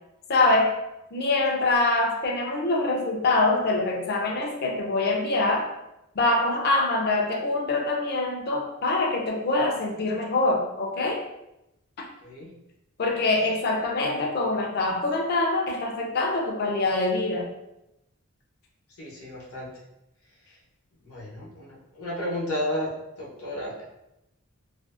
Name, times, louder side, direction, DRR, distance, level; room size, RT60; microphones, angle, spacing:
voice 1, 0.3-0.8 1.1-5.7 6.2-11.2 12.0-12.1 13.0-17.5, left 2 dB, 45° left, 0 dB, 0.4 m, -24 dB
voice 2, 19.0-19.7 21.0-22.9 23.2-23.9, left 1 dB, 80° left, -5 dB, 0.7 m, -32 dB
2.5 x 2.3 x 2.4 m, 0.88 s
head